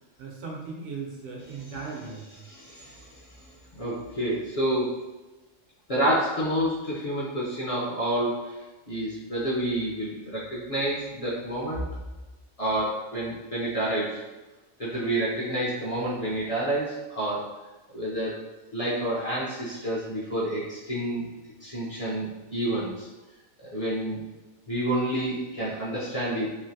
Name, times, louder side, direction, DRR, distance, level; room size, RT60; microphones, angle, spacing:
voice 1, 0.2-2.4, right 4 dB, 80° right, -2 dB, 1.1 m, -37 dB
voice 2, 2.4-3.5 3.8-5.0 5.9-8.6 8.9-11.9 12.6-14.2 14.8-17.5 17.9-18.4 18.7-21.3 21.6-23.1 23.6-24.2 24.7-26.5, right 1 dB, 40° left, -7 dB, 0.6 m, -29 dB
3.1 x 2.5 x 2.6 m, 1.1 s
omnidirectional pair, 1.3 m